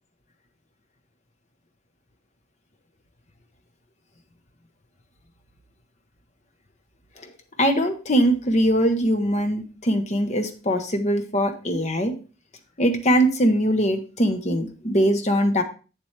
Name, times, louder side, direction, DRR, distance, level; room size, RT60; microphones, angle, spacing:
voice 1, 7.6-12.1 12.8-15.6, equal, 40° left, 6 dB, 1.1 m, -21 dB
7.9 x 7.5 x 3.3 m, 0.34 s
head